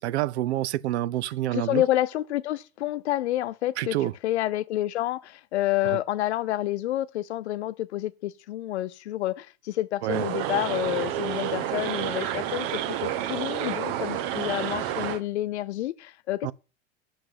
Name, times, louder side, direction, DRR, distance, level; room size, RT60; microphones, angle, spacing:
voice 1, 0.0-1.8 3.8-4.1 10.0-10.3 16.4-16.5, right 14 dB, 90° right, 0.5 m, -27 dB
voice 2, 1.5-16.5, left 14 dB, 85° left, 0.7 m, -29 dB
sound 1, 10.1-15.2, right 11 dB, 60° right, 1.1 m, -30 dB
7.9 x 6.7 x 7.6 m
hypercardioid pair, 105°, 33 cm